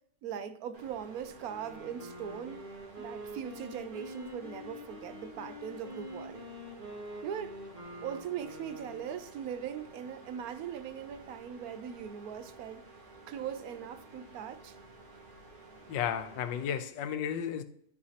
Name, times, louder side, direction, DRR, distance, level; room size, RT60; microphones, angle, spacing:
voice 1, 0.2-2.7 3.0-6.5 7.2-7.6 8.0-12.9 13.3-14.8, right 8 dB, 70° right, 0.9 m, -40 dB
sound 1, 0.7-16.8, right 2 dB, 55° right, 1.9 m, -53 dB
Wind instrument woodwind instrument, 1.4-9.3, equal, 30° right, 1.7 m, -46 dB
voice 2, 15.9-17.6, left 8 dB, 90° left, 1.3 m, -33 dB
12.5 x 4.8 x 2.8 m
omnidirectional pair, 1.9 m